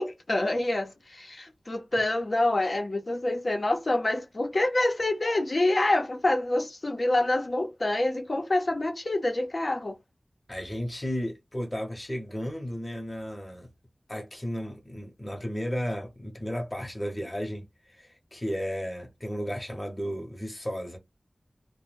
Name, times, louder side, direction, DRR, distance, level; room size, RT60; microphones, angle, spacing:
voice 1, 0.0-10.0, left 2 dB, 55° left, 0.8 m, -27 dB
voice 2, 10.5-13.7 14.1-17.7 18.0-21.0, equal, 25° left, 1.0 m, -34 dB
2.2 x 2.2 x 3.3 m
wide cardioid pair, 45°, 0 cm